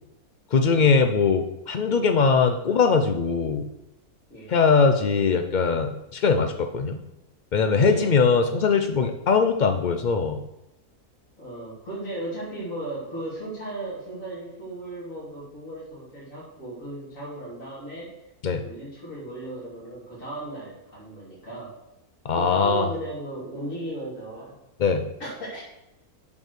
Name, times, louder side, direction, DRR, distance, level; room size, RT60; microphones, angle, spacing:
voice 1, 0.5-3.7 4.5-7.0 7.5-10.4 18.4-18.6 22.2-22.9 24.8-25.0, left 5 dB, 70° left, 6 dB, 0.4 m, -21 dB
voice 2, 11.4-18.1 18.6-21.7 22.3-24.6 25.2-25.6, right 1 dB, 55° left, -7 dB, 3.1 m, -36 dB
7.0 x 6.4 x 6.6 m, 0.93 s
omnidirectional pair, 1.6 m